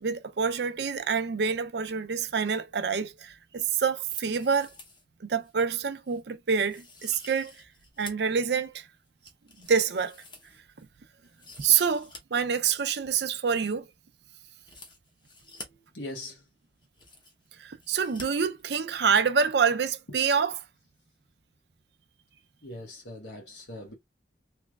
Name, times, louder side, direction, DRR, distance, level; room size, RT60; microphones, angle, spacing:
voice 1, 0.0-4.7 5.2-7.5 8.0-8.8 9.6-10.2 11.6-13.9 17.6-20.5, right 6 dB, 70° right, 0.5 m, -27 dB
sound 1, 4.0-5.0 5.4-5.5 6.1-6.2 6.7-8.3 8.7-10.9 11.2-12.2 12.5-12.6 14.6-15.7 16.5-16.6 16.8-17.5 17.8-18.3 18.5-18.6, left 2 dB, 25° left, 0.8 m, -49 dB
voice 2, 15.4-16.5 20.1-20.2 22.6-23.9, left 1 dB, 90° left, 1.3 m, -42 dB
3.3 x 3.1 x 2.3 m
head